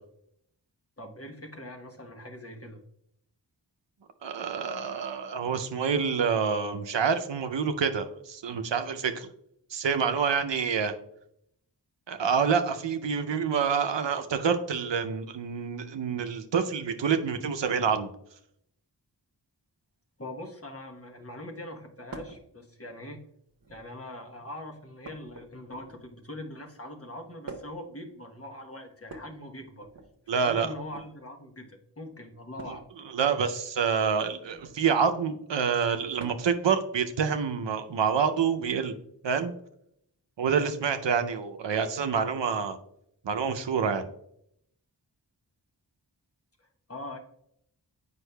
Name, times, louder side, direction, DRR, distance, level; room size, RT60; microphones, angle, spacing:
voice 1, 1.0-2.8 20.2-23.2 23.7-29.9 30.3-32.9 46.6-47.2, left 1 dB, 35° left, 3 dB, 1.0 m, -42 dB
voice 2, 4.2-9.3 9.7-10.9 12.1-18.1 30.3-30.7 33.1-38.9 39.2-39.5 40.4-42.8 43.2-44.1, right 6 dB, 90° right, 7 dB, 0.6 m, -27 dB
sound 1, 22.1-22.4 23.5-24.0 25.0-26.1 27.5-27.9 29.0-30.1 30.8-31.1 32.6-32.9 34.4-34.8 36.2-36.6 38.1-38.2 39.4-39.5, right 3 dB, 55° right, 1.0 m, -45 dB
8.0 x 5.4 x 2.2 m, 0.72 s
wide cardioid pair, 45°, 42 cm